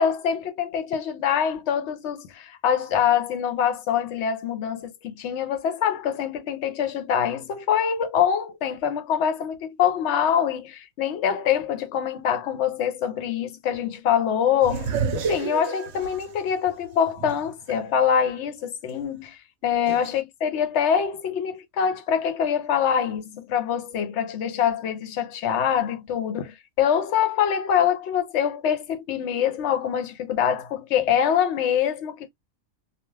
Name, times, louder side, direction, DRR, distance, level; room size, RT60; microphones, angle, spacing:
voice 1, 0.0-32.3, left 8 dB, 65° left, 0.9 m, -24 dB
sound 1, 14.6-17.7 18.2-18.3 19.9-20.2, right 6 dB, 65° right, 0.9 m, -30 dB
2.4 x 2.3 x 3.1 m
omnidirectional pair, 1.3 m